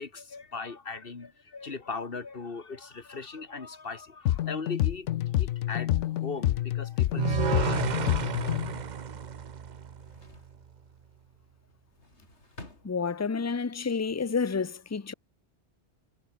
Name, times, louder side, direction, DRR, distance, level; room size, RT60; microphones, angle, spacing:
voice 1, 0.0-5.1 5.4-8.6, left 4 dB, 50° left, 2.1 m, -39 dB
sound 1, 4.3-8.8, left 13 dB, 90° left, 0.9 m, -28 dB
sound 2, 5.0-5.9 6.4-6.5 6.8-9.5 9.8-10.6 11.7-13.5 13.9-14.6, left 2 dB, 70° left, 5.0 m, -53 dB
sound 3, 7.2-10.4, right 7 dB, 45° right, 0.8 m, -31 dB
voice 2, 12.8-15.1, left 5 dB, 20° left, 0.5 m, -29 dB
omnidirectional pair, 1.2 m